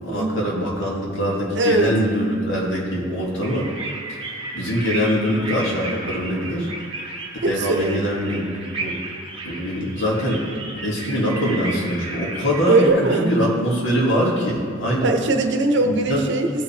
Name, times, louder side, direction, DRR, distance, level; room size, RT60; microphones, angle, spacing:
voice 1, 0.0-3.7 4.5-6.7 7.5-8.9 9.4-15.1 15.8-16.2, equal, 70° left, -3 dB, 2.2 m, -23 dB
voice 2, 1.6-1.9 7.4-8.0 12.7-13.3 15.0-16.6, right 2 dB, 65° right, 5 dB, 0.8 m, -20 dB
sound 1, 3.4-12.9, right 2 dB, 25° right, 1.3 m, -33 dB
15.5 x 5.7 x 3.4 m, 2.3 s
head